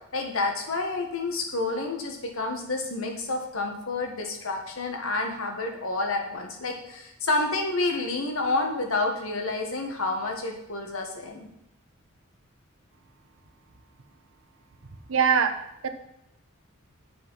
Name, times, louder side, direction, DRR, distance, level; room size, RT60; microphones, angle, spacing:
voice 1, 0.1-11.5, left 2 dB, 80° left, 3 dB, 1.6 m, -29 dB
voice 2, 15.1-15.5 15.8-15.9, right 6 dB, 70° right, 8 dB, 0.8 m, -21 dB
7.8 x 5.8 x 5.7 m, 0.80 s
head